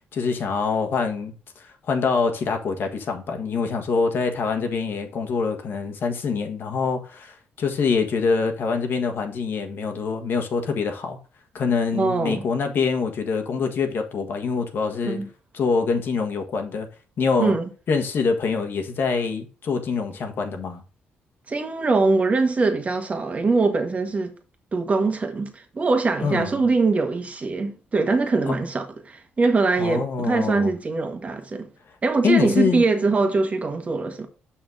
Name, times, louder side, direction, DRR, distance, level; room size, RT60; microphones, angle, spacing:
voice 1, 0.1-11.2 11.5-15.2 15.5-16.9 17.2-17.6 17.9-20.8 26.2-26.6 28.5-28.6 29.8-30.7 32.2-32.8, left 5 dB, 60° left, 1.5 m, -25 dB
voice 2, 11.9-12.5 15.0-15.3 17.4-17.7 21.5-24.3 24.7-31.7 32.0-34.3, right 3 dB, 35° right, 1.5 m, -22 dB
6.4 x 5.9 x 3.8 m
cardioid pair, 85°, 4 cm